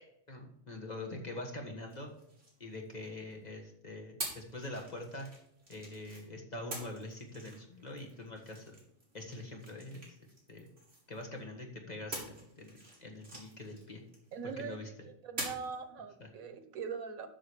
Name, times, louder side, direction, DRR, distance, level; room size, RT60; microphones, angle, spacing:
voice 1, 0.0-2.1 2.6-5.3 5.7-8.8 9.1-10.2 10.5-10.7 11.1-14.0 14.4-14.9 16.2-16.3, left 2 dB, 30° left, 1 dB, 1.6 m, -44 dB
sound 1, 1.9-3.3 4.2-6.2 6.7-11.4 12.1-14.6 15.4-15.8, right 1 dB, 50° right, 3.2 m, -46 dB
voice 2, 14.3-14.8 15.1-17.3, right 6 dB, 85° right, 10 dB, 1.4 m, -41 dB
7.7 x 6.3 x 6.6 m, 0.75 s
omnidirectional pair, 1.4 m